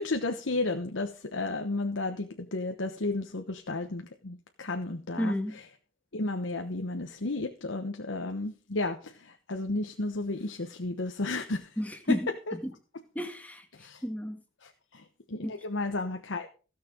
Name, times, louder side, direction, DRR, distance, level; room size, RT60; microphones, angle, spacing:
voice 1, 0.0-5.3 6.1-11.7 12.1-12.2 13.8-14.0 14.6-16.5, left 2 dB, 85° left, 6 dB, 1.1 m, -33 dB
voice 2, 5.2-5.6 11.8-12.3 12.6-12.7 13.1-13.6 14.0-14.4 15.4-15.5, equal, 10° left, 5 dB, 1.6 m, -31 dB
16.0 x 6.8 x 5.1 m, 0.36 s
head